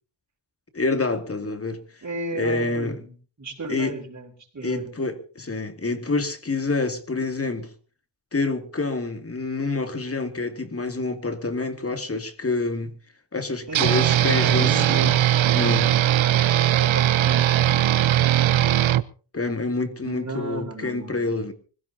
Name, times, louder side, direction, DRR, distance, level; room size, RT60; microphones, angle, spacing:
voice 1, 0.7-1.8 2.3-3.0 3.7-3.9 4.6-7.7 8.3-12.9 13.3-15.0 15.5-15.9 19.3-21.5, left 3 dB, 30° left, 2.7 m, -27 dB
voice 2, 2.0-3.1 3.4-4.9 13.7-15.2 16.4-18.6 20.0-21.4, right 2 dB, 35° right, 5.4 m, -34 dB
sound 1, 13.7-19.0, right 12 dB, 75° right, 0.9 m, -19 dB
25.0 x 16.5 x 2.9 m
cardioid pair, 80°, 48 cm